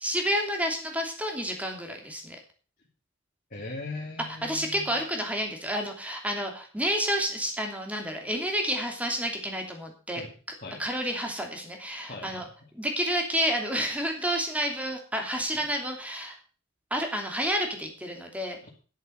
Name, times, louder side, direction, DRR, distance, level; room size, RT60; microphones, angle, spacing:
voice 1, 0.0-2.4 4.4-10.2 10.8-12.4 12.7-16.4 16.9-18.6, equal, 5° right, 3 dB, 2.9 m, -30 dB
voice 2, 3.5-4.8 10.2-10.3 10.6-10.8 12.1-12.5 15.6-15.7, left 2 dB, 45° left, -2 dB, 2.6 m, -39 dB
11.0 x 8.1 x 6.5 m, 0.38 s
head